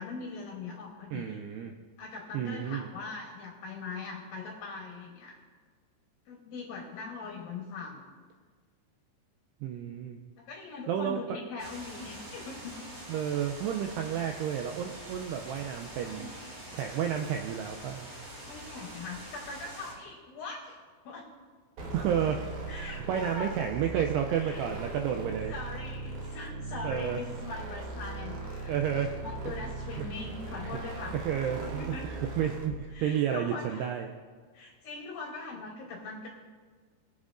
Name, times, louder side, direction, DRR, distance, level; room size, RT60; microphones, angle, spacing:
voice 1, 0.0-1.4 2.0-5.4 6.3-8.0 10.4-12.9 16.0-16.3 18.4-20.8 21.0-21.3 22.7-23.5 24.3-24.7 25.5-28.8 29.1-31.3 31.6-32.1 32.9-33.9 34.5-36.3, left 4 dB, 70° left, -1 dB, 2.4 m, -41 dB
voice 2, 1.1-1.7 2.3-2.9 9.6-10.2 10.9-11.2 13.1-16.3 16.7-18.1 21.9-22.5 22.8-25.5 26.8-27.2 28.7-29.2 30.0-30.1 31.1-34.1, right 9 dB, 85° right, 4 dB, 2.4 m, -31 dB
sound 1, 11.6-19.9, right 1 dB, 45° right, 4.1 m, -45 dB
sound 2, 21.8-32.8, right 3 dB, 60° right, 2.1 m, -39 dB
21.0 x 7.5 x 2.5 m, 1.5 s
omnidirectional pair, 5.1 m